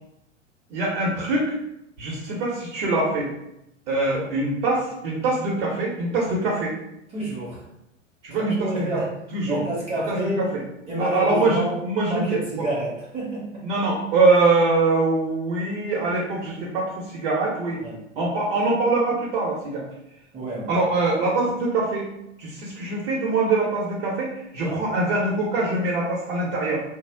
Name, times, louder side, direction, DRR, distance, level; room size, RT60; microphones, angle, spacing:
voice 1, 0.7-1.5 2.0-3.3 3.9-6.7 8.2-9.0 9.3-9.6 10.0-10.6 11.0-12.4 13.6-17.8 18.2-19.8 20.7-22.1 22.4-26.8, right 3 dB, 50° right, -4 dB, 0.8 m, -23 dB
voice 2, 3.9-4.3 7.1-7.6 8.4-9.1 9.5-10.5 10.9-11.8 12.1-13.6 17.8-18.0 20.3-20.7 24.6-24.8, right 1 dB, 15° right, -5 dB, 0.7 m, -28 dB
2.3 x 2.0 x 3.3 m, 0.84 s
figure-of-eight pair, 95°, 37 cm